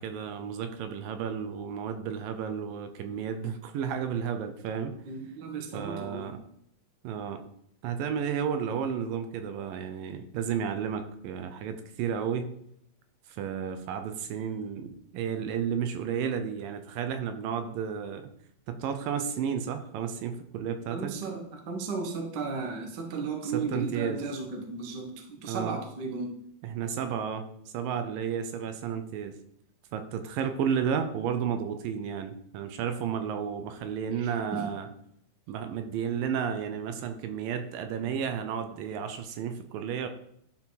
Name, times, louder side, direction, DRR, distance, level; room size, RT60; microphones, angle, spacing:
voice 1, 0.0-4.9 5.7-6.4 7.0-7.4 7.8-12.5 13.3-18.3 18.7-21.1 23.4-24.3 25.5-25.7 26.6-27.4 27.7-29.4 29.9-34.9 35.5-40.1, right 7 dB, 75° right, 7 dB, 2.4 m, -32 dB
voice 2, 5.0-6.4 20.9-26.4 34.1-34.7, right 4 dB, 60° right, 2 dB, 1.1 m, -35 dB
11.5 x 4.6 x 4.1 m, 0.72 s
omnidirectional pair, 4.2 m